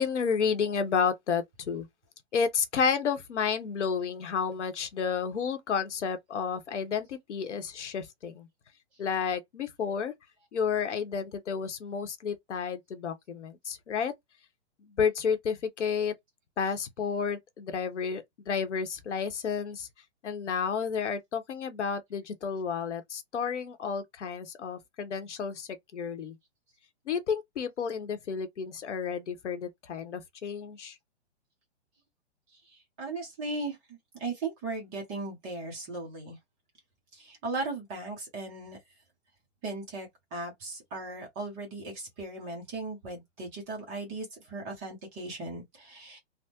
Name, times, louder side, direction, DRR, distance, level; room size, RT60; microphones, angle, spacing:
voice 1, 0.0-1.9 2.3-8.5 9.0-10.1 10.5-14.1 14.8-16.1 16.6-19.9 20.2-26.3 27.1-30.9, left 6 dB, 80° left, 0.9 m, -31 dB
voice 2, 32.5-36.4 37.1-38.8 39.6-46.2, right 2 dB, 10° right, 0.6 m, -37 dB
3.4 x 2.0 x 2.8 m
hypercardioid pair, 160°, 35 cm